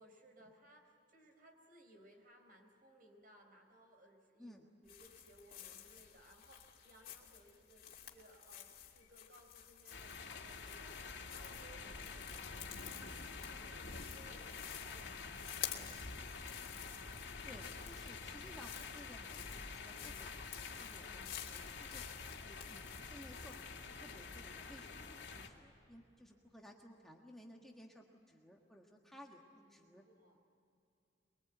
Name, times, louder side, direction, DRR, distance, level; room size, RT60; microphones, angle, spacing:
voice 1, 0.0-4.6 4.8-16.1 29.6-30.4, right 1 dB, 50° right, 4 dB, 4.4 m, -63 dB
sound 1, 4.8-23.7, left 10 dB, 55° left, 2.7 m, -52 dB
sound 2, 9.9-25.5, left 4 dB, 70° left, 2.5 m, -48 dB
voice 2, 17.4-22.0 22.4-30.0, equal, ahead, 0 dB, 1.6 m, -58 dB
24.0 x 23.5 x 9.0 m, 2.6 s
head